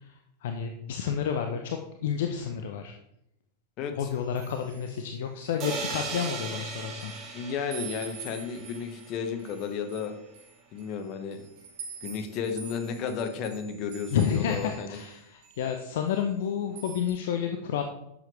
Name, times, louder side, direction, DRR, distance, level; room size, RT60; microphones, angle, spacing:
voice 1, 0.4-2.9 4.0-7.1 14.1-17.8, left 8 dB, 55° left, 5 dB, 0.8 m, -30 dB
voice 2, 3.8-4.1 7.3-10.1 10.7-11.5 12.0-15.0, left 6 dB, 40° left, 7 dB, 1.4 m, -33 dB
sound 1, 4.0-6.0 6.3-7.3 7.7-15.1 15.4-16.4 16.8-17.1, right 6 dB, 55° right, 3.0 m, -47 dB
sound 2, 5.6-9.4, right 4 dB, 35° right, 2.3 m, -37 dB
11.5 x 7.6 x 3.3 m, 0.83 s
figure-of-eight pair, 90°, 0 cm